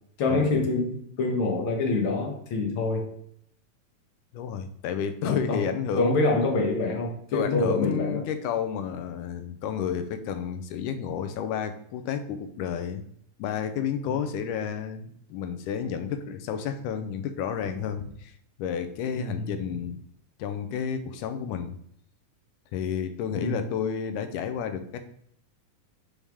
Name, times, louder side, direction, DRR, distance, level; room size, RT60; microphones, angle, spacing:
voice 1, 0.2-3.2 5.2-5.6 6.0-8.2 14.1-14.2 19.1-19.5 23.3-23.7, left 3 dB, 65° left, 1 dB, 1.3 m, -26 dB
voice 2, 4.3-6.3 7.3-13.0 13.4-18.3 18.6-20.0 20.4-21.8 22.7-25.0, left 7 dB, 80° left, 9 dB, 2.1 m, -31 dB
5.6 x 4.8 x 3.5 m, 0.68 s
omnidirectional pair, 3.8 m